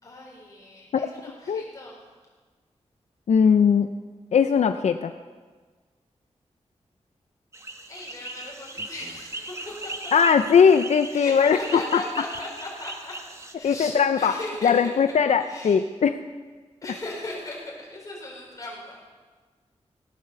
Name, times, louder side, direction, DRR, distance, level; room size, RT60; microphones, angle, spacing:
voice 1, 0.0-2.0 7.9-10.3 11.1-15.8 16.8-19.0, left 2 dB, 30° left, -4 dB, 4.6 m, -38 dB
voice 2, 3.3-3.9 4.3-5.1 10.1-12.0 13.6-14.3 14.6-16.2, left 6 dB, 80° left, 9 dB, 0.5 m, -19 dB
sound 1, 7.5-13.5, right 2 dB, 25° right, 1.1 m, -39 dB
16.5 x 9.0 x 6.9 m, 1.4 s
wide cardioid pair, 170°, 12 cm